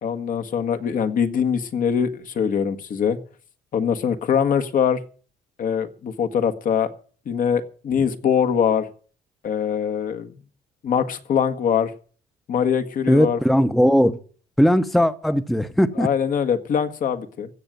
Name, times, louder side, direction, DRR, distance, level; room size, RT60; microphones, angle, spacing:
voice 1, 0.0-3.2 3.7-5.0 5.6-6.9 7.2-8.9 9.4-10.3 10.8-11.9 12.5-13.4 16.0-17.5, left 7 dB, 55° left, 1.6 m, -22 dB
voice 2, 13.1-14.2 14.6-16.1, equal, ahead, 0.9 m, -18 dB
15.5 x 6.6 x 9.3 m
cardioid pair, 110°, 17 cm